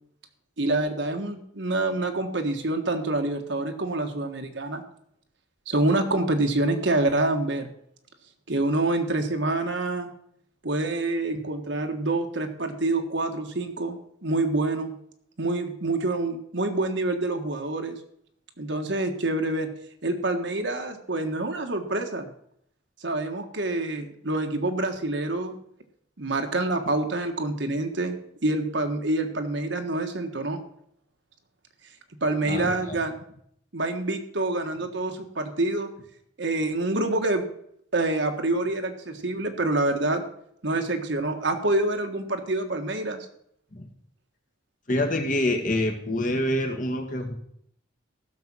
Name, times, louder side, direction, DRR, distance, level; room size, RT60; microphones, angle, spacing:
voice 1, 0.6-4.8 5.7-7.7 8.5-10.1 10.6-14.9 15.4-18.0 18.6-19.7 20.0-22.3 23.0-25.6 26.2-30.6 32.2-33.1 33.7-35.9 36.4-37.4 37.9-40.3 40.6-43.2, right 2 dB, 65° right, 5 dB, 1.5 m, -26 dB
voice 2, 32.4-33.0 43.7-43.9 44.9-47.3, left 1 dB, 40° left, 4 dB, 1.7 m, -26 dB
15.0 x 6.8 x 6.2 m, 0.69 s
head